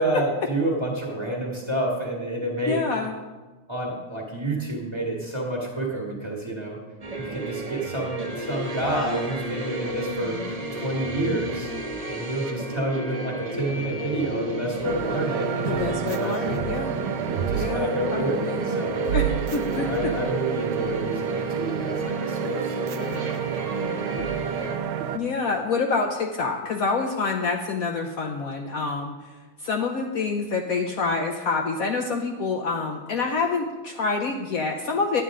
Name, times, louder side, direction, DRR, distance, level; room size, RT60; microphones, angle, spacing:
voice 1, 0.0-2.9 3.7-6.8 7.2-10.4 10.7-11.7 12.1-16.3 17.3-19.2 19.8-23.3 24.1-24.3, right 1 dB, 15° right, -2 dB, 1.5 m, -29 dB
voice 2, 2.7-3.1 15.6-16.9 17.6-18.9 19.1-19.2 19.5-19.9 25.1-29.2 29.6-35.2, left 4 dB, 85° left, 3 dB, 0.7 m, -27 dB
sound 1, 7.0-24.8, right 1 dB, 60° right, 0.3 m, -33 dB
sound 2, 14.8-25.2, right 7 dB, 75° right, 1.3 m, -29 dB
11.0 x 9.1 x 3.7 m, 1.3 s
omnidirectional pair, 2.3 m